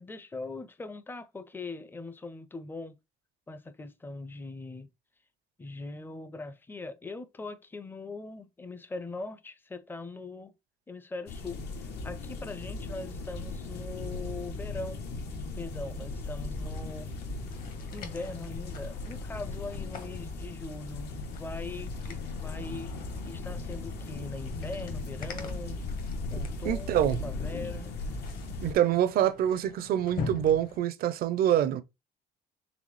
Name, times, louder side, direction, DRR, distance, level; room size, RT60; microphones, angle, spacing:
voice 1, 0.0-3.0 3.5-4.9 5.6-10.5 10.9-11.6 12.0-15.1 15.6-17.1 17.9-23.0 23.2-25.8 26.3-27.9, left 3 dB, 10° left, 0.5 m, -41 dB
sound 1, 11.3-28.7, left 3 dB, 75° left, 0.9 m, -37 dB
sound 2, 16.5-30.8, left 4 dB, 55° left, 1.2 m, -44 dB
voice 2, 26.6-27.2 28.6-31.8, right 11 dB, 60° right, 0.5 m, -25 dB
4.0 x 3.4 x 3.1 m
cardioid pair, 110°, 17 cm